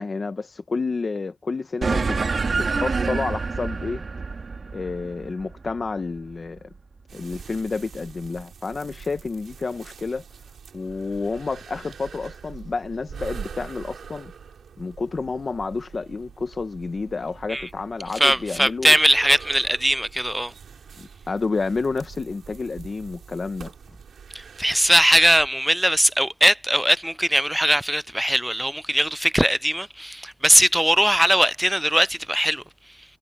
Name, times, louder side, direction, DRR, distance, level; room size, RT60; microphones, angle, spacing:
voice 1, 0.0-2.2 2.5-4.0 4.7-6.7 7.1-10.2 10.7-14.3 14.8-19.0 21.0-23.7, left 4 dB, 35° left, 0.9 m, -30 dB
sound 1, 1.8-6.6, right 4 dB, 45° right, 1.9 m, -27 dB
sound 2, 7.1-25.5, right 7 dB, 80° right, 7.1 m, -44 dB
voice 2, 18.2-20.5 24.3-32.6, right 1 dB, 5° right, 0.3 m, -20 dB
wide cardioid pair, 140°, 0 cm